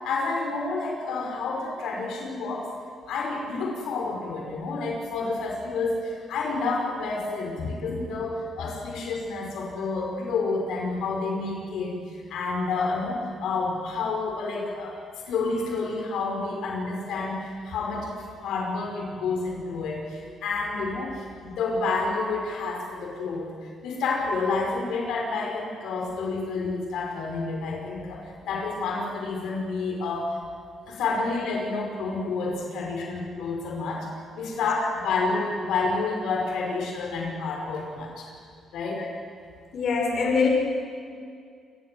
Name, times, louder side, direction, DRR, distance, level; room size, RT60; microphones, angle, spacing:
voice 1, 0.0-2.7 3.1-12.0 12.3-14.9 15.3-23.5 23.8-30.3 30.9-34.1 34.4-38.3 38.7-39.0, left 3 dB, 80° left, 0 dB, 5.3 m, -29 dB
voice 2, 39.7-40.5, left 5 dB, 60° left, 0 dB, 5.2 m, -24 dB
27.0 x 21.0 x 7.8 m, 2.3 s
cardioid pair, 90°, 0 cm